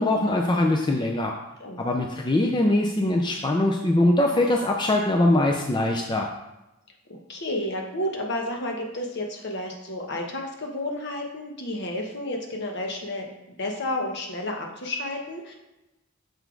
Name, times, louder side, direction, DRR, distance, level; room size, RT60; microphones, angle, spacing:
voice 1, 0.0-1.3 1.8-6.3, left 1 dB, 20° left, 2 dB, 0.4 m, -22 dB
voice 2, 7.1-13.3 13.6-15.5, left 1 dB, 55° left, 1 dB, 1.1 m, -31 dB
6.6 x 4.1 x 4.6 m, 0.97 s
head